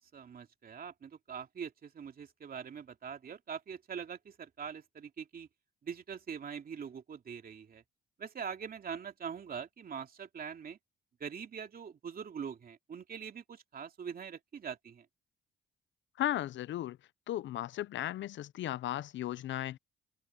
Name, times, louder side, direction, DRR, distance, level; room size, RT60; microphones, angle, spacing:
voice 1, 0.1-5.5 5.8-7.8 8.2-10.8 11.2-15.1, right 7 dB, 50° right, 2.7 m, -43 dB
voice 2, 16.2-17.0 17.3-19.8, left 13 dB, 70° left, 0.6 m, -35 dB
cardioid pair, 90°, 20 cm